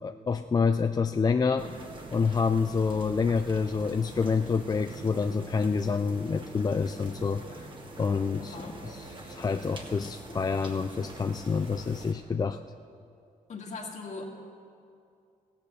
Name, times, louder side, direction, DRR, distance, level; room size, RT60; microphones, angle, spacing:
voice 1, 0.0-1.7 2.1-7.7 8.0-12.6, left 5 dB, 25° left, 8 dB, 0.4 m, -28 dB
sound 1, 1.6-12.1, right 2 dB, 35° right, 1.7 m, -44 dB
voice 2, 8.4-8.8 13.5-14.2, left 4 dB, 55° left, 1 dB, 2.0 m, -40 dB
15.5 x 8.5 x 6.9 m, 2.5 s
cardioid pair, 85°, 14 cm